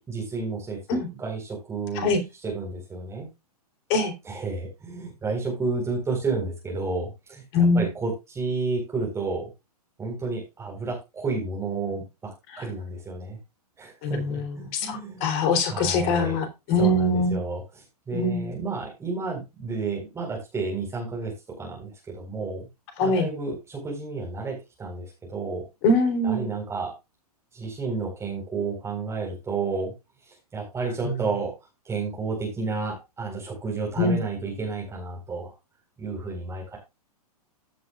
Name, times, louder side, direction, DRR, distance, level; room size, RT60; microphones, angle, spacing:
voice 1, 0.0-3.3 4.2-9.5 10.0-13.4 13.8-15.2 15.7-16.4 16.8-22.7 23.0-25.6 26.2-26.9 27.5-29.9 30.3-31.5 31.8-35.5 36.0-36.8, right 3 dB, 15° right, 4.4 m, -31 dB
voice 2, 7.5-7.8 14.0-14.4 14.7-17.4 18.1-18.5 23.0-23.3 25.8-26.5 34.0-34.2, left 2 dB, 40° left, 3.6 m, -23 dB
15.0 x 7.9 x 2.5 m
hypercardioid pair, 120°, 20 cm